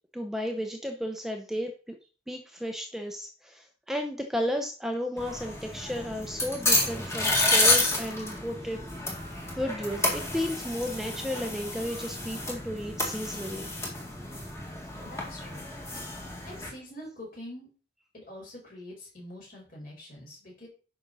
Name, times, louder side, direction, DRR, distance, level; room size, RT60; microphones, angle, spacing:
voice 1, 0.1-2.0 2.3-8.8 9.6-13.7, equal, ahead, 3 dB, 0.7 m, -33 dB
sound 1, 5.2-16.7, left 2 dB, 15° left, 1.8 m, -30 dB
voice 2, 15.0-15.7 16.1-17.7 18.1-20.7, left 1 dB, 50° left, -3 dB, 4.9 m, -45 dB
8.9 x 5.9 x 4.1 m, 0.37 s
head